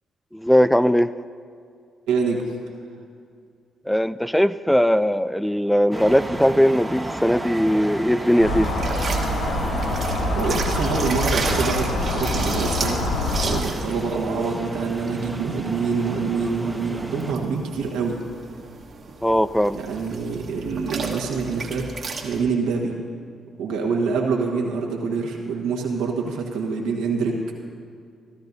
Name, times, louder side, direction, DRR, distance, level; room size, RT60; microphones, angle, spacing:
voice 1, 0.3-1.1 3.9-8.7 19.2-19.8, equal, 5° left, 14 dB, 0.3 m, -19 dB
voice 2, 2.1-2.4 10.3-13.1 13.4-18.2 19.7-21.9 22.2-23.0 23.6-27.4, right 5 dB, 80° right, 0 dB, 1.5 m, -26 dB
sound 1, 5.9-17.3, right 1 dB, 15° right, 1.2 m, -33 dB
sound 2, 8.4-13.6, left 1 dB, 85° left, 1.1 m, -25 dB
sound 3, 8.6-22.4, right 4 dB, 55° right, 1.5 m, -34 dB
16.5 x 13.0 x 2.7 m, 2.3 s
hypercardioid pair, 45°, 0 cm